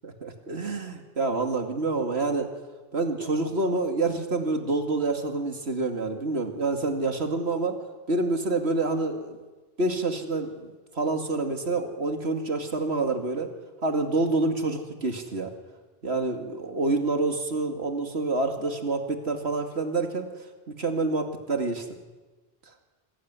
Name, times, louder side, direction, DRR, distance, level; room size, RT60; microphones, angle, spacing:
voice 1, 0.0-2.5 2.9-7.8 8.1-9.4 9.8-13.5 13.8-15.5 16.0-20.3 20.7-21.9, right 3 dB, 90° right, 5 dB, 2.7 m, -27 dB
27.5 x 19.5 x 9.7 m, 1.2 s
omnidirectional pair, 1.1 m